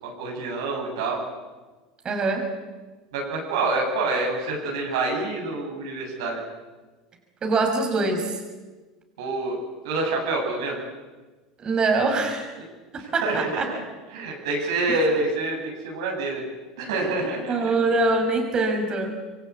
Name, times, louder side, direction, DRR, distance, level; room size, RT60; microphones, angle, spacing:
voice 1, 0.0-1.2 3.1-6.4 9.2-9.6 9.8-10.8 13.0-13.8 14.1-16.4 16.8-17.7, right 3 dB, 70° right, 0 dB, 7.5 m, -27 dB
voice 2, 2.0-2.5 7.4-8.4 11.6-12.5 12.9-13.7 14.9-15.0 17.5-19.1, right 3 dB, 35° right, 3 dB, 6.1 m, -24 dB
26.5 x 23.5 x 8.6 m, 1.3 s
hypercardioid pair, 75°, 3 cm